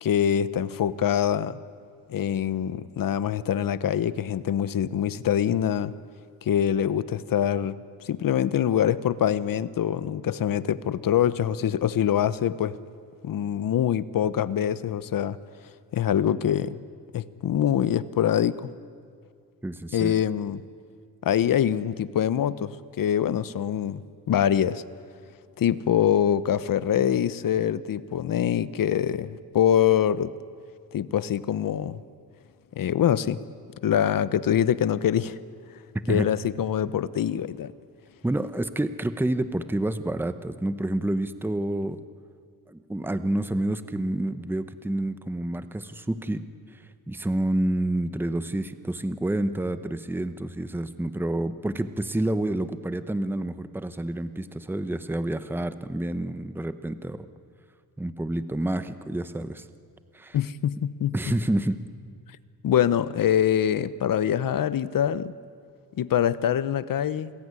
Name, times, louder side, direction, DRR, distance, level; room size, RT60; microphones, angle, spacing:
voice 1, 0.0-1.6 2.1-5.9 6.4-12.8 13.2-15.4 15.9-16.8 17.1-18.7 19.9-20.6 21.2-24.8 25.6-30.3 30.9-32.0 32.7-33.4 33.8-35.4 36.1-37.7 60.3-61.1 62.6-65.3 65.9-67.3, left 9 dB, 60° left, 16 dB, 0.9 m, -24 dB
voice 2, 19.6-20.1 36.1-36.2 38.2-42.0 42.7-46.4 46.7-57.3 58.0-59.7 60.1-60.4 61.1-61.8, right 1 dB, 5° right, 11 dB, 0.9 m, -28 dB
28.5 x 20.5 x 9.7 m, 2.1 s
wide cardioid pair, 150°, 37 cm